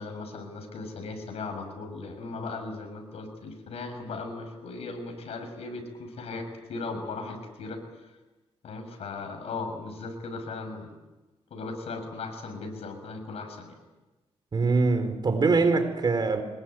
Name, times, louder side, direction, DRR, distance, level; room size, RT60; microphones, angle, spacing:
voice 1, 0.0-8.1 8.6-10.9 11.5-13.8, left 3 dB, 80° left, 6.5 m, -37 dB
voice 2, 14.5-16.4, right 3 dB, 45° right, 4.4 m, -23 dB
25.5 x 21.5 x 9.3 m
cardioid pair, 95°, 10 cm